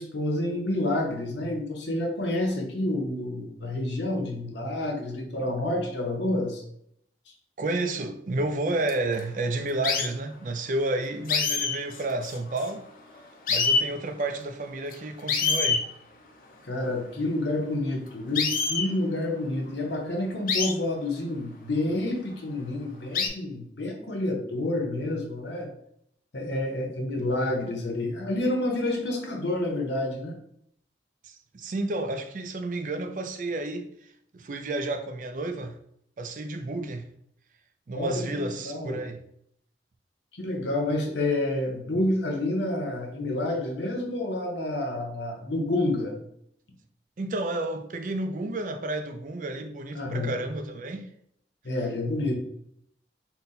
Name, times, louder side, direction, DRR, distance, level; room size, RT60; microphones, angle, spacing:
voice 1, 0.0-6.6 16.7-25.7 26.3-30.4 37.9-39.0 40.3-46.1 49.9-50.3 51.6-52.4, left 1 dB, 80° left, 0.8 m, -29 dB
voice 2, 7.6-12.8 13.5-15.8 31.2-34.1 34.3-35.8 36.2-37.1 37.9-39.2 47.2-51.1, right 2 dB, 45° right, 0.4 m, -31 dB
sound 1, 8.9-9.2 9.8-10.1 11.3-12.9 13.1-13.2 13.5-13.9 14.9-15.0 15.3-15.9 18.3-18.9 20.5-20.7 21.9-22.0 23.1-23.3, left 5 dB, 50° left, 0.4 m, -25 dB
3.9 x 2.2 x 3.9 m
head